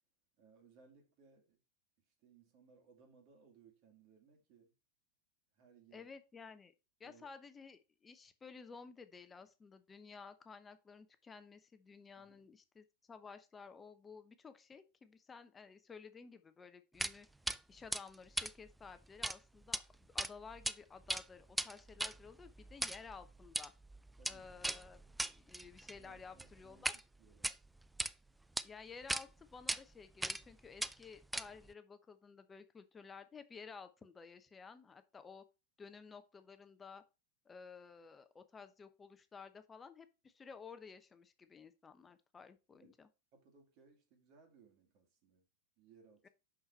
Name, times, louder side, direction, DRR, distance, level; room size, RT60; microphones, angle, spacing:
voice 1, 0.4-1.6 2.2-4.7 5.5-6.1 7.0-7.2 12.2-12.4 24.2-24.5 25.1-25.3 26.0-27.6 42.7-42.9 43.3-45.4 45.8-46.3, right 5 dB, 45° right, 2.4 m, -65 dB
voice 2, 5.9-6.7 7.0-17.3 17.7-23.7 24.3-25.0 25.3-27.0 28.6-35.4 35.8-37.0 37.4-43.1 46.2-46.3, left 5 dB, 15° left, 0.8 m, -54 dB
sound 1, 17.0-17.2 17.5-17.6 17.9-19.4 19.6-19.8 20.2-20.7 21.0-27.0 27.3-28.1 28.6-28.7 29.1-29.2 29.7-29.8 30.2-30.5 30.8-31.7, right 1 dB, 5° right, 0.3 m, -39 dB
6.1 x 5.6 x 4.2 m
figure-of-eight pair, 90°, 0 cm